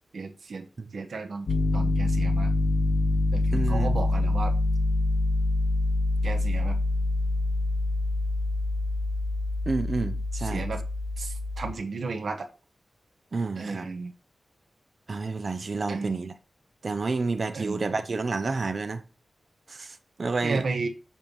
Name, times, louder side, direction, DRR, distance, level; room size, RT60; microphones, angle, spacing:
voice 1, 0.1-0.7 0.9-2.5 3.3-4.5 6.2-6.8 10.4-10.8 11.2-12.5 13.6-14.1 15.9-16.3 17.5-17.9 20.4-20.9, right 4 dB, 70° right, 1.2 m, -33 dB
Piano, 1.5-11.7, left 2 dB, 65° left, 2.2 m, -26 dB
voice 2, 3.5-4.0 9.7-10.7 13.3-13.9 15.1-16.3 16.8-19.0 19.7-20.7, right 3 dB, 45° right, 0.8 m, -30 dB
7.3 x 4.6 x 5.5 m
wide cardioid pair, 125°, 0 cm